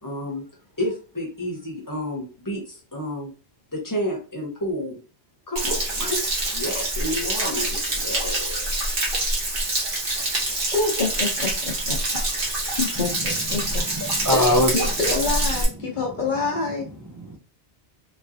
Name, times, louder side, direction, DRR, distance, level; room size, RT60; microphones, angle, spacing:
voice 1, 0.0-0.4 0.8-3.3 3.7-5.0 5.5-6.2 6.5-8.7, equal, 20° left, -1 dB, 1.1 m, -30 dB
Stream / Splash splatter / Trickle dribble, 5.6-15.6, right 2 dB, 55° right, 1.3 m, -26 dB
voice 2, 10.7-12.2 12.8-16.9, left 3 dB, 45° left, 0 dB, 1.0 m, -27 dB
voice 3, 13.5-14.9 15.8-15.9 17.0-17.4, left 1 dB, 25° right, -3 dB, 0.4 m, -24 dB
3.4 x 3.0 x 2.7 m, 0.35 s
omnidirectional pair, 1.2 m